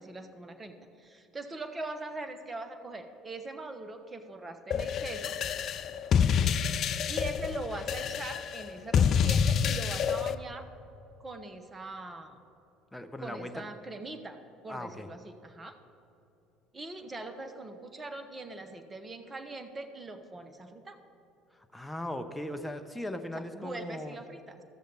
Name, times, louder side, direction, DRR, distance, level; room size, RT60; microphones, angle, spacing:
voice 1, 0.0-5.4 6.3-6.5 6.8-10.7 11.2-12.4 13.2-14.4 14.6-15.8 16.7-21.0 23.3-24.6, right 2 dB, 25° right, 7 dB, 1.0 m, -42 dB
sound 1, 4.7-10.3, left 7 dB, 50° left, 0.4 m, -28 dB
voice 2, 12.9-13.7 14.7-15.1 21.7-24.2, left 1 dB, 5° left, 6 dB, 0.8 m, -38 dB
14.5 x 6.7 x 4.0 m, 2.8 s
hypercardioid pair, 65°, 0 cm